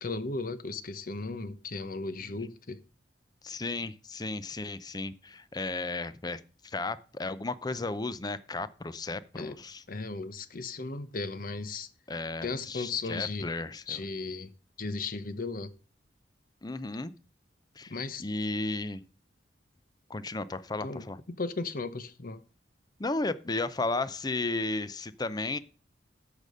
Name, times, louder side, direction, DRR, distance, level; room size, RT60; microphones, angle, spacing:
voice 1, 0.0-2.8 9.4-9.5 9.9-11.9 12.4-13.6 13.9-14.5 14.8-15.7 17.9-18.2 20.8-22.4, left 3 dB, 50° left, 0.8 m, -36 dB
voice 2, 3.4-9.8 12.1-14.0 16.6-17.1 17.8-19.0 20.1-21.2 23.0-25.6, left 2 dB, 20° left, 0.6 m, -34 dB
13.0 x 5.2 x 5.5 m
head